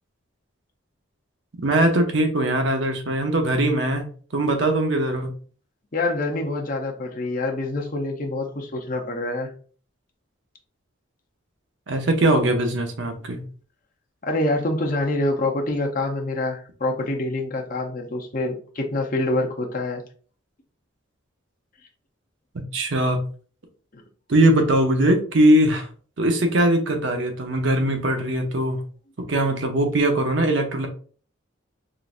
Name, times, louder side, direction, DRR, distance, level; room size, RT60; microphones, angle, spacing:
voice 1, 1.6-4.1 4.3-5.3 11.9-13.4 22.5-23.2 24.3-25.9 26.2-28.8 29.3-30.9, right 1 dB, 65° right, 5 dB, 0.7 m, -21 dB
voice 2, 5.9-9.5 14.2-20.0 23.9-24.0, left 2 dB, 40° left, 2 dB, 0.6 m, -26 dB
3.8 x 2.5 x 2.4 m, 0.42 s
head